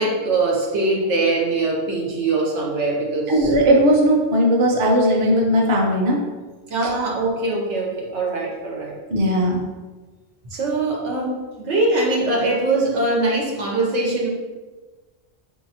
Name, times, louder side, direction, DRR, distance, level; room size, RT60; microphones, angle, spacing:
voice 1, 0.0-3.5 6.7-9.0 10.5-14.3, right 2 dB, 85° right, -1 dB, 1.1 m, -22 dB
voice 2, 3.3-6.2 9.1-9.6, equal, 40° right, -1 dB, 0.5 m, -17 dB
4.1 x 2.7 x 2.8 m, 1.3 s
omnidirectional pair, 1.2 m